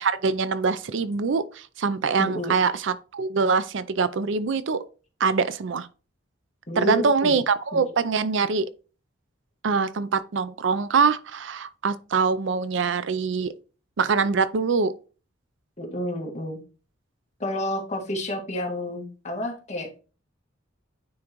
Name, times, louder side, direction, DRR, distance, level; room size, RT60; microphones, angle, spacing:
voice 1, 0.0-4.8 5.2-5.9 6.8-8.7 9.6-13.5 14.0-14.9, right 5 dB, 65° right, 0.5 m, -24 dB
voice 2, 2.2-2.6 6.7-7.4 7.7-7.8 15.8-16.6 17.4-20.0, left 1 dB, 35° left, 1.9 m, -30 dB
9.4 x 3.8 x 3.0 m
head